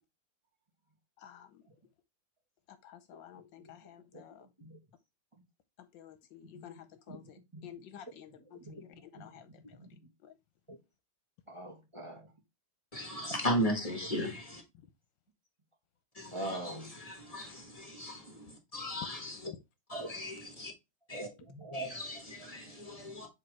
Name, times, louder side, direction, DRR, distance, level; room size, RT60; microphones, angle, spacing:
voice 1, 1.2-1.6 2.7-4.5 5.8-10.3, left 10 dB, 75° left, 1.4 m, -53 dB
voice 2, 11.5-12.3 16.3-16.9 19.9-20.3 21.1-22.0, right 1 dB, 15° right, 2.3 m, -42 dB
voice 3, 12.9-14.6 16.1-19.5 19.9-20.7 21.1-21.3 21.7-23.3, equal, 20° left, 1.6 m, -37 dB
7.4 x 4.2 x 3.3 m
omnidirectional pair, 2.1 m